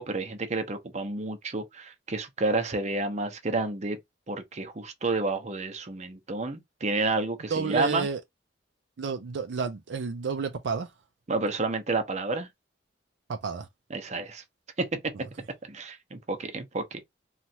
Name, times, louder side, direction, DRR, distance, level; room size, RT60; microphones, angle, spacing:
voice 1, 0.0-4.0 4.3-8.1 11.3-12.5 13.9-14.4 14.8-15.0 15.7-17.0, right 3 dB, 40° right, 0.7 m, -30 dB
voice 2, 7.5-8.2 9.0-10.9 13.3-13.7, right 5 dB, 75° right, 0.4 m, -30 dB
3.0 x 2.4 x 2.7 m
head